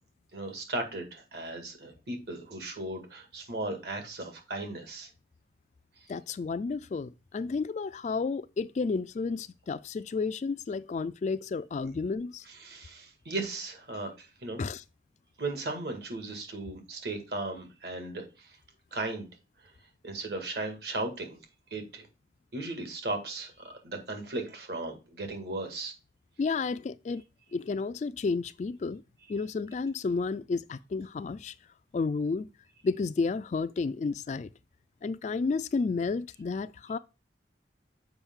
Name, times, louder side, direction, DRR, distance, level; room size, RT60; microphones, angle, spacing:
voice 1, 0.3-5.1 11.8-11.9 12.6-14.6 15.4-18.6 18.9-19.3 20.0-21.4 21.7-22.1 22.5-25.9, right 2 dB, 65° right, 2.0 m, -36 dB
voice 2, 6.1-12.5 14.6-14.8 26.4-27.2 27.5-29.0 29.3-31.5 31.9-32.5 32.8-34.5 35.0-37.0, left 4 dB, 40° left, 0.3 m, -31 dB
7.0 x 5.2 x 3.6 m
head